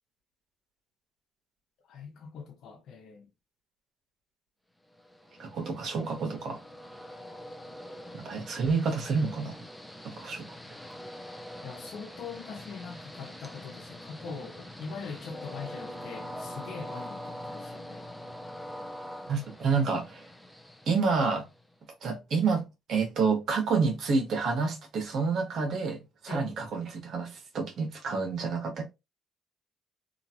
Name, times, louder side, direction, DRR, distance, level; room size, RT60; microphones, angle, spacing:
voice 1, 1.9-3.3 11.6-18.1 26.3-26.5, left 5 dB, 75° left, 0.8 m, -42 dB
Train, 5.0-21.7, left 1 dB, 5° left, 0.6 m, -44 dB
voice 2, 5.4-6.6 8.1-9.7 10.0-10.4 19.3-20.3 20.9-21.4 22.0-26.0 26.2-28.8, right 4 dB, 65° right, 1.1 m, -29 dB
3.1 x 2.4 x 2.8 m
cardioid pair, 90°, 0 cm